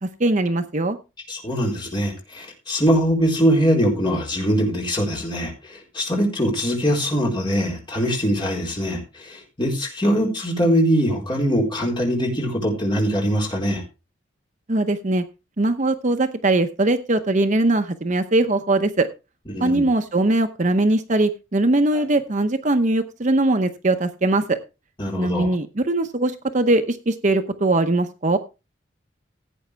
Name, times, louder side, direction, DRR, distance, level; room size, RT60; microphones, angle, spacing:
voice 1, 0.0-1.0 14.7-15.2 15.6-19.1 19.6-24.6 25.2-28.4, right 2 dB, 40° right, 8 dB, 0.8 m, -21 dB
voice 2, 1.3-13.8 19.5-19.9 25.0-25.5, equal, 25° left, -1 dB, 4.3 m, -22 dB
16.5 x 8.4 x 3.4 m, 0.29 s
head